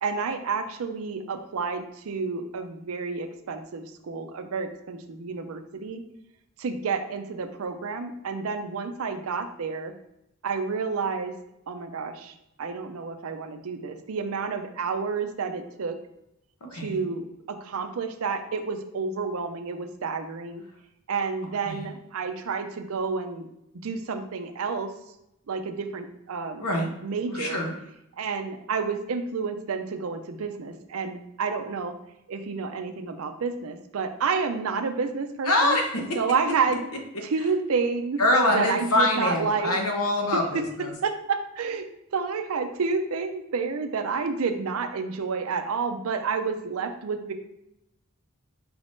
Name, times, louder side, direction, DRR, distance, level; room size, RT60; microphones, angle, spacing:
voice 1, 0.0-6.0 6.6-9.9 10.4-11.3 11.7-16.0 16.7-20.6 21.1-23.5 23.8-24.9 25.5-26.7 27.0-27.6 28.2-31.9 32.3-35.8 36.1-36.8 37.2-38.2 38.5-39.7 40.5-40.6 41.0-41.9 42.1-47.3, right 5 dB, 75° right, 8 dB, 0.5 m, -30 dB
voice 2, 16.7-17.0 21.6-21.9 26.6-26.9 27.3-27.7 35.4-36.0 38.2-40.9, left 1 dB, 85° left, 2 dB, 0.9 m, -24 dB
4.8 x 3.5 x 2.6 m, 0.83 s
head